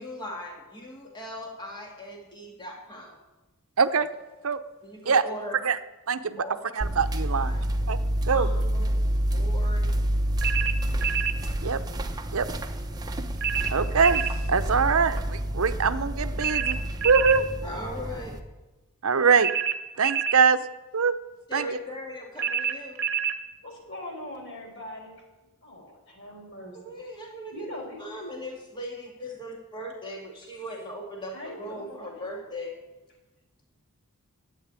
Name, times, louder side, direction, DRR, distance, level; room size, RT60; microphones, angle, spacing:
voice 1, 0.0-3.2 4.8-5.6 6.4-6.6 7.3-7.6 8.3-8.9 9.3-9.9 11.0-11.2 11.7-11.8 17.6-18.4 21.5-23.0 26.7-27.5 28.0-32.7, equal, 20° left, 0 dB, 2.0 m, -39 dB
voice 2, 3.8-4.1 4.4-4.6 5.1-5.2 5.6-5.8 6.1-6.4 6.7-7.5 7.9-8.0 8.3-8.5 11.6-11.8 12.3-12.5 13.7-14.2 14.5-16.8 17.0-17.5 19.0-19.5 20.0-20.6 20.9-21.1 21.5-21.7, right 5 dB, 65° right, 11 dB, 0.7 m, -23 dB
sound 1, 6.8-18.4, right 1 dB, 15° right, 0.9 m, -28 dB
sound 2, 10.4-11.4 13.4-14.4 16.4-17.4 19.4-20.4 22.4-23.4, right 8 dB, 50° right, 1.1 m, -27 dB
voice 3, 23.6-25.2 25.6-26.8 27.5-28.0 31.3-32.3, left 1 dB, 55° left, 0 dB, 4.8 m, -41 dB
12.5 x 8.9 x 9.5 m, 1.1 s
head